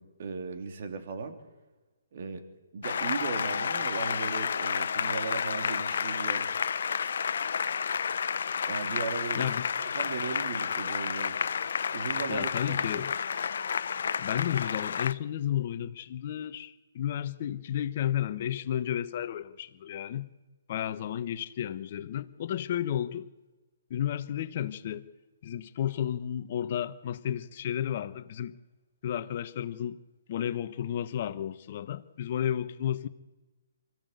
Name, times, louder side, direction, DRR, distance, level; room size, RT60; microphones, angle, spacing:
voice 1, 0.0-1.4 2.1-2.5 2.7-6.5 8.7-9.5 9.8-11.4 11.9-13.1, right 5 dB, 50° right, 3.1 m, -37 dB
Applause, 2.8-15.1, left 6 dB, 60° left, 0.7 m, -31 dB
voice 2, 9.3-9.7 12.3-13.1 14.2-20.3 20.7-23.3 23.9-25.1 25.4-28.6 29.0-30.0 30.3-33.1, left 10 dB, 45° left, 1.1 m, -32 dB
24.5 x 15.5 x 8.2 m
figure-of-eight pair, 140°, 0 cm